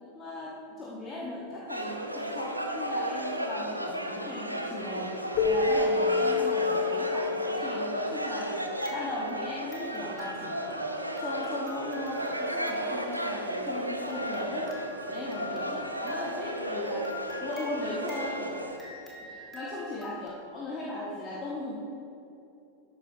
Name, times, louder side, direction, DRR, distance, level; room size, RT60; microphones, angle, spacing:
voice 1, 0.0-8.6 8.9-10.9 11.2-17.1 17.4-21.7, left 1 dB, 20° left, -6 dB, 1.5 m, -38 dB
sound 1, 1.7-18.8, right 1 dB, 85° right, 0.7 m, -33 dB
Keyboard (musical), 5.4-8.6, left 4 dB, 45° left, 1.1 m, -28 dB
sound 2, 8.8-20.3, left 2 dB, 5° left, 2.4 m, -45 dB
13.0 x 9.4 x 2.8 m, 2.7 s
figure-of-eight pair, 90°, 0 cm